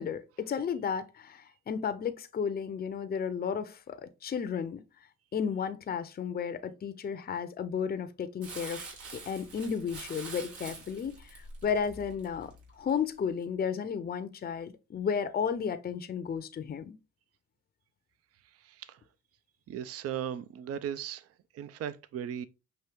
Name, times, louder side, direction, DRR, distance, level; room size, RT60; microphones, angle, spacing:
voice 1, 0.0-4.8 5.3-8.8 9.1-17.0, left 7 dB, 30° left, 0.6 m, -33 dB
Crumpling crinkling, 8.4-12.9 13.4-13.5, right 4 dB, 80° right, 2.0 m, -45 dB
voice 2, 19.7-21.2 21.5-22.5, right 9 dB, 50° right, 0.5 m, -37 dB
5.9 x 2.7 x 3.3 m
cardioid pair, 90°, 30 cm